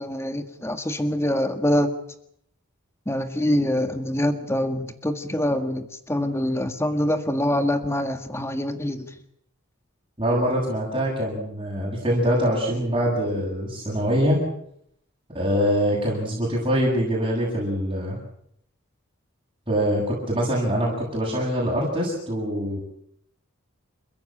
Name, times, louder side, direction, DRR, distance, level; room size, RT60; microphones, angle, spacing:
voice 1, 0.0-1.9 3.0-9.1, left 1 dB, 10° left, 7 dB, 1.7 m, -25 dB
voice 2, 10.2-14.4 15.3-18.2 19.7-22.8, equal, 25° right, -3 dB, 7.6 m, -24 dB
29.0 x 16.0 x 8.8 m, 0.71 s
head